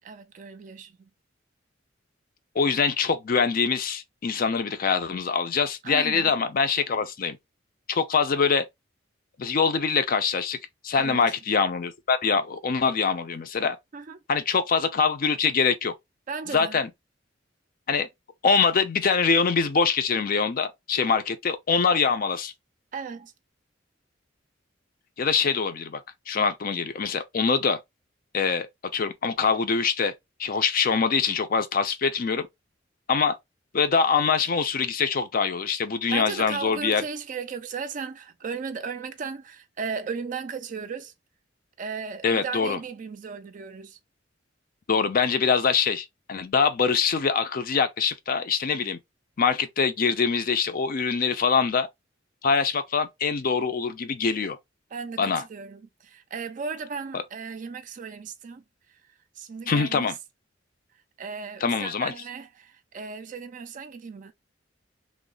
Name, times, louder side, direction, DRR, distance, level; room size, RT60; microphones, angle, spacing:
voice 1, 0.0-1.1 5.8-6.3 10.9-11.3 13.9-14.2 16.3-16.8 21.0-21.2 22.9-23.3 36.1-41.1 41.8-44.0 54.9-58.6 59.4-60.1 61.2-64.3, right 5 dB, 45° right, 0.4 m, -36 dB
voice 2, 2.5-7.4 7.9-8.6 9.4-10.6 10.8-13.8 14.3-15.9 16.5-16.9 17.9-18.1 18.4-22.5 25.2-26.0 26.3-27.8 28.3-28.7 28.9-30.1 30.4-32.5 33.1-33.4 33.7-37.0 42.2-42.8 44.9-49.0 49.4-51.9 52.4-54.6 55.2-55.4 57.1-57.2 59.7-60.1 61.6-62.1, left 5 dB, 50° left, 0.5 m, -24 dB
3.1 x 2.0 x 3.7 m
head